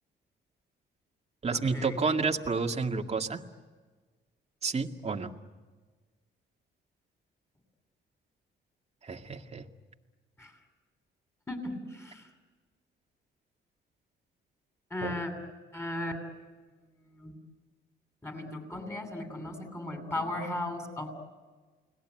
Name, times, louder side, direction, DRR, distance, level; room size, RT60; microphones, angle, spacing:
voice 1, 1.4-3.4 4.6-5.3 9.0-9.6 15.0-15.2, right 4 dB, 30° right, 4 dB, 2.1 m, -30 dB
voice 2, 11.5-12.2 14.9-15.3 15.7-16.1 17.1-17.3 18.2-21.1, left 1 dB, 10° left, 4 dB, 7.8 m, -36 dB
30.0 x 20.5 x 9.1 m, 1.3 s
cardioid pair, 90°, 20 cm